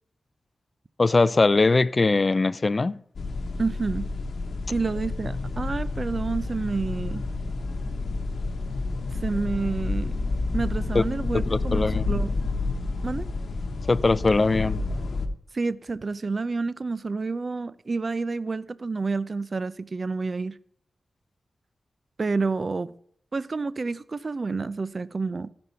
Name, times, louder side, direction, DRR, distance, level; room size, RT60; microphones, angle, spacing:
voice 1, 1.0-3.0 10.9-11.0 11.3-12.0 13.9-14.8, left 3 dB, 35° left, 0.4 m, -21 dB
sound 1, 3.2-15.3, left 3 dB, 65° left, 1.0 m, -29 dB
voice 2, 3.6-4.1 4.7-7.2 9.2-10.2 10.5-11.8 12.1-12.3 13.0-13.3 15.5-20.5 22.2-22.9 23.3-25.5, right 4 dB, 45° right, 0.5 m, -29 dB
15.5 x 5.3 x 5.7 m
cardioid pair, 80°, 0 cm